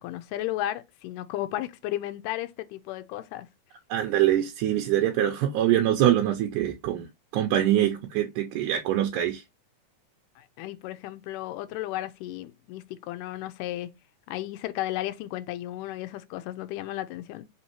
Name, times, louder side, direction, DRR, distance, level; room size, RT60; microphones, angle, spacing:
voice 1, 0.0-3.5 10.4-13.9 14.3-17.4, left 14 dB, 85° left, 2.1 m, -34 dB
voice 2, 3.9-7.1 7.3-9.4, right 12 dB, 80° right, 1.9 m, -24 dB
5.2 x 2.7 x 2.8 m
omnidirectional pair, 3.7 m